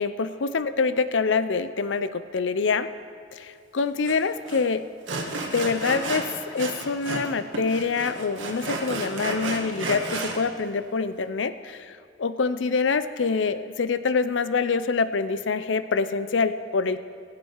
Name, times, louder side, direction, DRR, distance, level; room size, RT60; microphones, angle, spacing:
voice 1, 0.0-2.9 3.3-4.9 5.5-17.0, left 4 dB, 70° left, 12 dB, 0.6 m, -26 dB
Sawing, 4.0-4.2 4.5-4.6 5.1-7.3 7.5-10.4, right 3 dB, 80° right, 1.7 m, -32 dB
21.0 x 7.5 x 4.6 m, 2.4 s
head